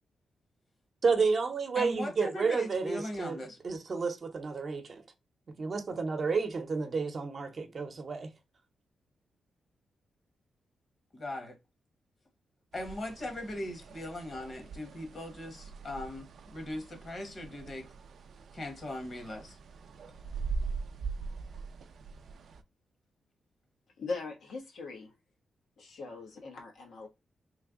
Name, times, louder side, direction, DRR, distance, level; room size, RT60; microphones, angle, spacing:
voice 1, 1.0-3.4 3.6-5.0 5.6-8.3, right 4 dB, 50° right, 0.7 m, -31 dB
voice 2, 1.7-3.6 11.1-11.6 12.7-17.9 18.5-19.6, left 1 dB, 45° left, 1.2 m, -39 dB
sound 1, 12.7-22.6, right 4 dB, 70° right, 0.3 m, -42 dB
voice 3, 24.0-25.1 25.8-27.1, left 3 dB, 85° left, 1.1 m, -40 dB
3.3 x 2.1 x 3.6 m
cardioid pair, 95°, 0 cm